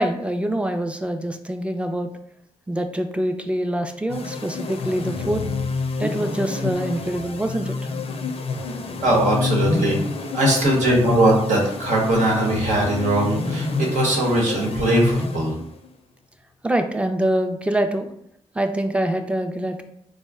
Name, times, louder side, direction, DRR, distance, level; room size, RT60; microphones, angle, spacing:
voice 1, 0.0-2.1 2.7-5.5 6.0-7.8 16.6-18.1 18.6-19.8, right 1 dB, 10° right, 6 dB, 0.4 m, -24 dB
sound 1, 4.1-15.9, left 3 dB, 55° left, 0.5 m, -28 dB
voice 2, 9.0-10.0 10.3-13.7 13.9-15.5, right 1 dB, 85° right, -1 dB, 1.0 m, -20 dB
3.6 x 2.1 x 3.5 m, 0.72 s
cardioid pair, 75°, 12 cm